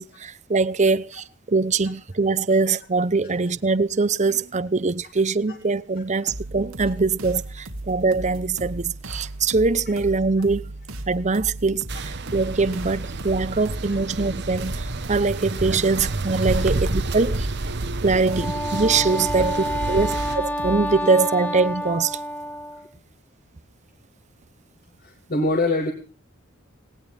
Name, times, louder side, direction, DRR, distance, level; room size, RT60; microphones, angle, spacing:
voice 1, 0.0-10.7 11.1-17.5 18.0-22.2, right 4 dB, 35° right, 0.7 m, -23 dB
sound 1, 6.3-21.0, right 1 dB, 90° right, 2.5 m, -36 dB
sound 2, 11.9-20.3, right 2 dB, 55° right, 1.2 m, -30 dB
Wind instrument woodwind instrument, 18.2-22.9, equal, 5° left, 0.7 m, -29 dB
voice 2, 25.0-25.9, left 2 dB, 45° left, 2.8 m, -25 dB
19.0 x 18.5 x 3.4 m
head